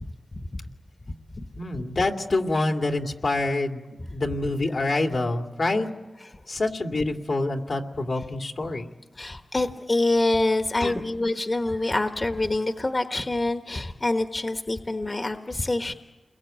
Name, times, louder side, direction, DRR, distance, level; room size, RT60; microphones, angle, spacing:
voice 1, 1.6-3.8 4.1-5.9 6.5-8.9 10.8-11.0, left 2 dB, 75° left, 3 dB, 2.5 m, -26 dB
voice 2, 9.1-15.9, left 2 dB, 40° left, 6 dB, 1.3 m, -26 dB
29.0 x 22.0 x 9.1 m, 1.1 s
cardioid pair, 55°, 0 cm